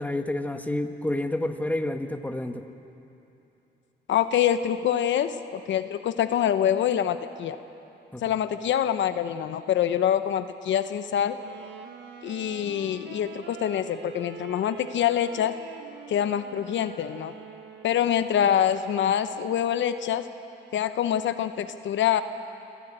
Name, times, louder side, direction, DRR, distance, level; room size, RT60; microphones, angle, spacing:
voice 1, 0.0-2.7 8.1-8.2, left 1 dB, 10° left, 6 dB, 1.4 m, -29 dB
voice 2, 4.1-7.6 8.2-11.4 12.2-15.6 16.1-17.3 17.8-20.3 20.7-22.2, left 10 dB, 70° left, 10 dB, 0.9 m, -25 dB
Wind instrument woodwind instrument, 11.3-18.2, right 7 dB, 70° right, 1.6 m, -45 dB
25.0 x 15.0 x 8.9 m, 2.9 s
cardioid pair, 90°, 20 cm